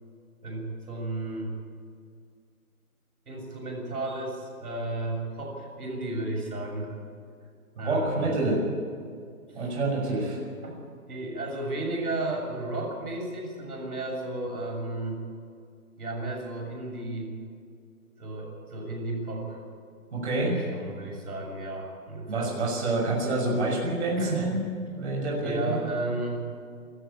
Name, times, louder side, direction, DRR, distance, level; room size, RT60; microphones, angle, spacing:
voice 1, 0.4-1.5 3.3-7.0 7.8-8.3 9.5-9.6 10.0-10.8 11.1-15.2 16.0-17.3 18.2-19.6 20.4-22.6 24.2-24.5 25.4-26.4, right 2 dB, 90° right, 0 dB, 7.5 m, -33 dB
voice 2, 7.8-8.7 9.5-10.3 20.1-20.6 22.3-24.6 24.9-25.8, right 2 dB, 50° right, -2 dB, 6.4 m, -27 dB
24.5 x 13.0 x 8.7 m, 2.2 s
hypercardioid pair, 175°, 43 cm